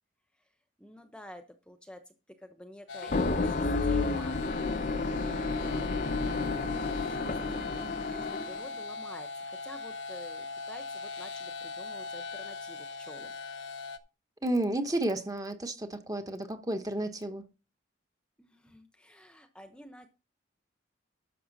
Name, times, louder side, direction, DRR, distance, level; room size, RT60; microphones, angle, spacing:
voice 1, 0.8-4.4 5.5-6.0 6.8-13.3 18.4-20.1, left 1 dB, 5° left, 1.0 m, -50 dB
sound 1, 2.9-14.0, left 4 dB, 85° left, 0.9 m, -40 dB
sound 2, 3.0-8.7, left 3 dB, 45° left, 0.7 m, -31 dB
voice 2, 14.4-17.4, right 1 dB, 20° right, 1.2 m, -31 dB
12.5 x 6.7 x 4.1 m
head